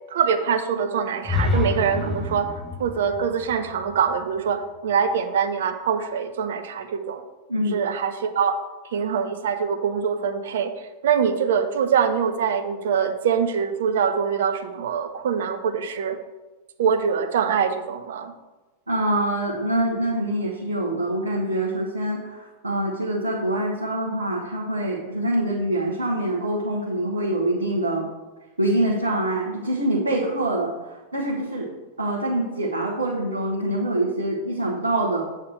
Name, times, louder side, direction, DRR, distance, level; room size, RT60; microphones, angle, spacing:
voice 1, 0.1-7.2 7.7-8.6 8.9-16.2 16.8-18.3, right 7 dB, 60° right, 8 dB, 0.8 m, -24 dB
sound 1, 1.2-5.1, left 3 dB, 10° left, 1.3 m, -28 dB
voice 2, 18.9-28.0 28.6-31.7 32.0-35.2, right 1 dB, 80° right, -4 dB, 1.3 m, -25 dB
7.7 x 4.2 x 6.3 m, 1.1 s
figure-of-eight pair, 90°, 0 cm